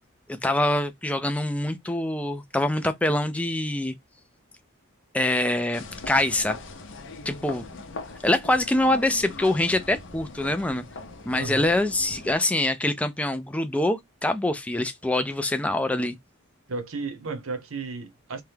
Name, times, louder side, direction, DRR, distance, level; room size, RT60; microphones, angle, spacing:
voice 1, 0.3-3.9 5.1-6.6 7.3-7.7 8.2-10.8 11.3-16.2, left 1 dB, 5° left, 0.3 m, -25 dB
sound 1, 5.7-12.4, left 3 dB, 55° left, 0.6 m, -41 dB
voice 2, 11.3-11.7 16.7-18.4, right 3 dB, 70° right, 0.7 m, -33 dB
2.8 x 2.2 x 3.2 m
head